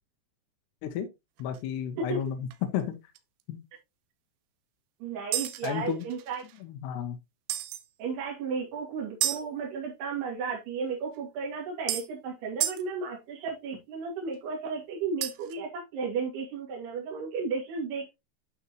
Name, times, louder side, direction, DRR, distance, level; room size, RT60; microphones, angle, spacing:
voice 1, 1.4-3.0 3.5-3.6 5.6-6.0 6.6-7.2, left 9 dB, 80° left, 2.6 m, -32 dB
sound 1, 1.4-1.6 2.1-2.2 2.5-2.6 3.2-3.3 5.3-6.6 7.5-7.9 9.2-9.4 11.1-11.2 11.9-12.1 12.6-12.8 15.2-15.5, right 13 dB, 85° right, 2.6 m, -31 dB
voice 2, 5.0-6.5 8.0-18.1, right 5 dB, 60° right, 4.2 m, -34 dB
12.0 x 4.2 x 2.9 m
omnidirectional pair, 5.6 m